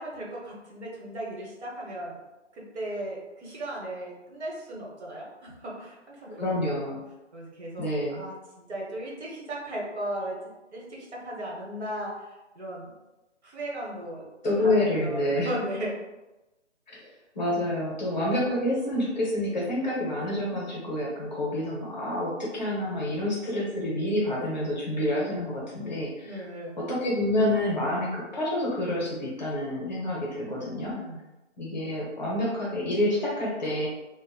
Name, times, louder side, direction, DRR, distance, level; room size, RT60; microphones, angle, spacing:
voice 1, 0.0-2.2 2.5-6.9 7.3-12.9 13.4-14.3 14.6-14.7 15.0-15.9 26.2-26.8 30.4-31.3, right 1 dB, 60° right, -4 dB, 1.0 m, -37 dB
voice 2, 6.4-7.0 7.8-8.2 14.4-15.5 16.9-26.5 26.8-30.9 31.6-33.9, left 1 dB, 35° left, -4 dB, 0.6 m, -28 dB
2.8 x 2.1 x 2.2 m, 1.0 s
hypercardioid pair, 160°, 37 cm